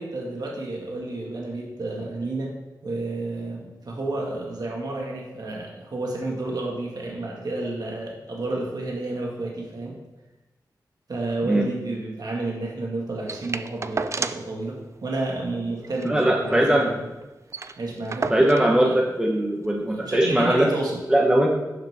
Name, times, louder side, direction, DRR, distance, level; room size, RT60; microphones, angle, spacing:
voice 1, 0.0-2.5 2.8-9.9 11.1-17.1 17.8-18.3 18.8-19.0 19.9-21.0, right 2 dB, 60° right, -2 dB, 1.8 m, -31 dB
sound 1, 13.3-14.6 14.9-15.0 15.3-15.4 15.8-16.9 17.2-17.3 17.5-18.8 19.6-19.7, right 3 dB, 40° right, 0.5 m, -32 dB
voice 2, 16.0-16.9 18.3-20.7 21.1-21.5, right 1 dB, 10° right, -1 dB, 1.1 m, -20 dB
11.0 x 6.6 x 3.6 m, 1.1 s
cardioid pair, 70°, 8 cm